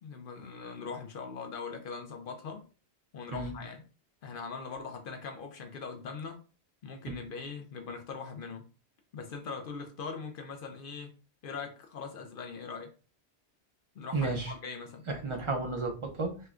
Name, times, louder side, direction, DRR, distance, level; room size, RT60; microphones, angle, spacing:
voice 1, 0.0-2.6 3.1-3.8 4.2-6.4 6.8-8.6 9.1-11.1 11.4-12.9 14.0-15.1, left 5 dB, 60° left, 4 dB, 0.7 m, -41 dB
voice 2, 14.1-14.5 15.1-16.4, right 3 dB, 40° right, 3 dB, 0.5 m, -32 dB
4.1 x 2.2 x 2.4 m, 0.35 s
omnidirectional pair, 1.1 m